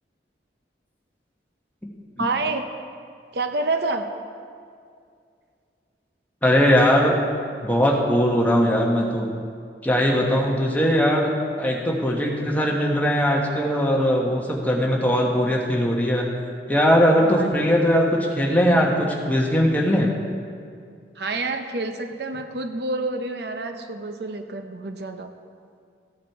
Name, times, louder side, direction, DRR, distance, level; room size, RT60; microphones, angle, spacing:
voice 1, 2.2-2.7 3.3-4.1 17.2-17.6 21.2-25.3, right 3 dB, 70° right, 7 dB, 0.7 m, -28 dB
voice 2, 6.4-7.1 7.6-9.3 9.8-11.3 11.6-16.3 16.7-20.1, equal, 10° left, -2 dB, 1.3 m, -20 dB
15.0 x 8.5 x 4.7 m, 2.3 s
head